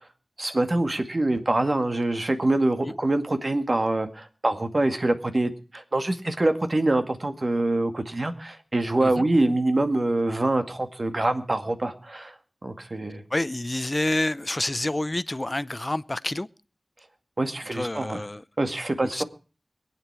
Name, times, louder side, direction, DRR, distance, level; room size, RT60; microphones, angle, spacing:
voice 1, 0.4-12.3 12.6-13.2 17.4-18.2 18.6-19.2, right 2 dB, 55° right, 2.1 m, -25 dB
voice 2, 13.3-16.5 17.7-18.4 19.1-19.2, left 1 dB, 35° left, 0.7 m, -28 dB
22.5 x 9.4 x 4.7 m
wide cardioid pair, 50°, 0 cm